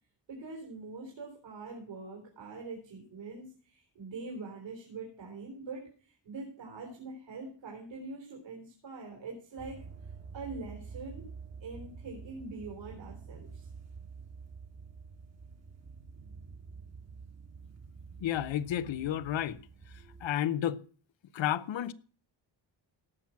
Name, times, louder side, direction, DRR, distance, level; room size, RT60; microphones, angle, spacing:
voice 1, 0.3-9.9 10.3-11.2 11.6-13.7, right 3 dB, 75° right, 4.2 m, -44 dB
sound 1, 9.6-20.3, right 5 dB, 35° right, 1.4 m, -48 dB
voice 2, 18.2-19.6 20.2-20.8 21.3-21.9, left 11 dB, 80° left, 0.8 m, -31 dB
17.5 x 6.0 x 5.8 m
wide cardioid pair, 135°, 45 cm